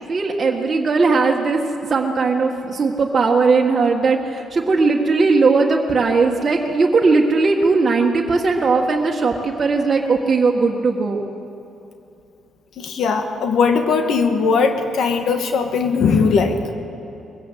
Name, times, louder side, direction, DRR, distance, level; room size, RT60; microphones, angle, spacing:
voice 1, 0.1-1.6 1.9-11.2, right 4 dB, 35° right, -1 dB, 1.6 m, -18 dB
voice 2, 12.8-16.6, left 5 dB, 70° left, 5 dB, 1.7 m, -19 dB
21.5 x 16.5 x 7.6 m, 2.7 s
cardioid pair, 90°, 0 cm